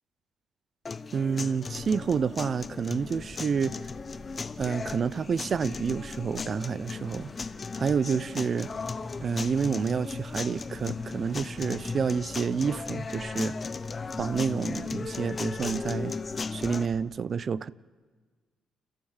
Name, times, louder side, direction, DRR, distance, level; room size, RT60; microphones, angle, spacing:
sound 1, 0.9-16.9, left 4 dB, 35° left, 0.7 m, -36 dB
voice 1, 1.1-3.7 4.6-7.3 7.7-8.7 9.2-13.6 14.2-16.1 16.5-17.7, right 6 dB, 45° right, 0.6 m, -29 dB
sound 2, 1.6-17.0, left 1 dB, 15° left, 2.6 m, -46 dB
29.5 x 13.0 x 7.2 m
cardioid pair, 90°, 0 cm